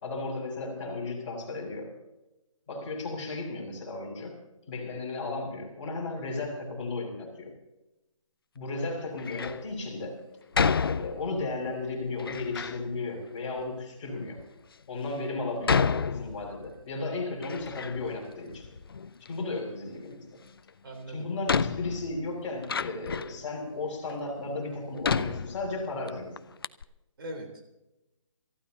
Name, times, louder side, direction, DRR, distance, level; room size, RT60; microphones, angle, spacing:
voice 1, 0.0-1.9 2.7-4.4 4.7-7.5 8.5-10.1 10.8-14.4 14.9-18.7 19.3-20.2 21.1-26.3, left 3 dB, 15° left, -8 dB, 5.0 m, -34 dB
Door, 9.2-9.7 10.5-11.5 12.2-12.8 13.6-13.7 14.4-14.5 15.6-16.8 17.1-18.2 18.5-19.3 20.7-20.8 21.5-23.4 24.1-24.2 25.0-26.1 26.4-26.5 26.6-26.8, left 5 dB, 45° left, 0.4 m, -30 dB
voice 2, 20.8-21.3 27.2-27.7, right 1 dB, 45° right, 2 dB, 3.8 m, -40 dB
28.0 x 15.0 x 2.9 m, 0.95 s
hypercardioid pair, 175°, 17 cm